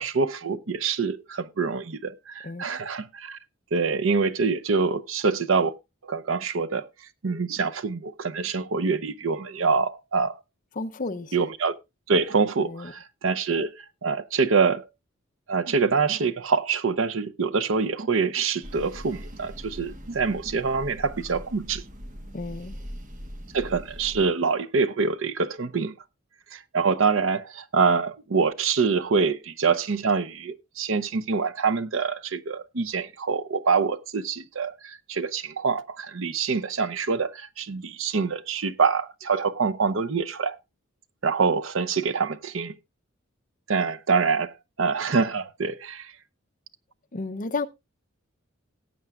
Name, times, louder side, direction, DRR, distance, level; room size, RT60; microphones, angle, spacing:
voice 1, 0.0-3.4 3.7-5.7 6.0-6.9 7.2-10.4 11.3-11.7 12.1-14.9 15.5-21.8 23.5-25.9 26.5-40.6 41.2-42.7 43.7-46.1, right 5 dB, 70° right, 0.7 m, -25 dB
voice 2, 10.8-11.5 12.6-12.9 22.3-22.8 47.1-47.7, left 3 dB, 40° left, 0.6 m, -32 dB
sound 1, 18.6-24.3, equal, 40° right, 1.3 m, -41 dB
18.0 x 8.0 x 2.4 m
head